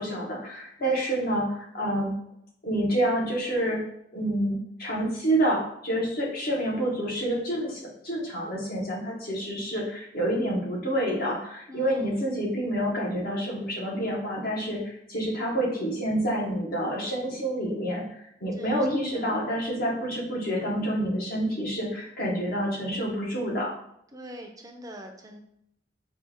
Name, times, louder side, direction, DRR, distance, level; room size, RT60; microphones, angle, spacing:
voice 1, 0.0-2.1 2.6-3.8 4.1-23.7, right 1 dB, 55° left, -3 dB, 1.2 m, -28 dB
voice 2, 0.8-1.3 11.7-12.4 18.5-18.9 19.1-19.3 24.1-25.4, equal, 20° right, 3 dB, 0.5 m, -43 dB
4.2 x 2.4 x 3.5 m, 0.74 s
head